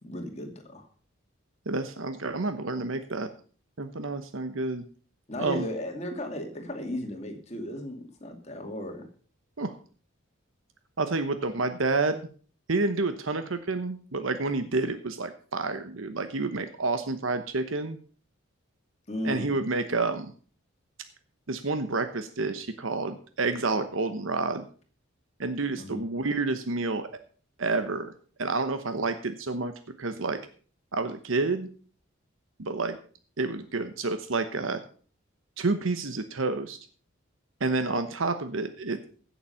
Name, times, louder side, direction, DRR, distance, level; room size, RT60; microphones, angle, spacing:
voice 1, 0.0-0.9 5.3-9.1 19.1-19.5 25.8-26.0, left 1 dB, 30° left, 4 dB, 2.4 m, -35 dB
voice 2, 1.7-3.3 3.8-4.8 5.4-5.7 9.6-9.7 11.0-12.2 12.7-18.0 19.2-20.3 21.5-24.6 25.4-27.1 27.6-28.1 28.4-29.7 30.0-30.4 30.9-31.7 32.6-33.0 33.4-34.8 35.6-36.8 37.6-39.1, right 3 dB, 75° right, 10 dB, 1.0 m, -29 dB
16.0 x 7.3 x 5.7 m, 0.42 s
head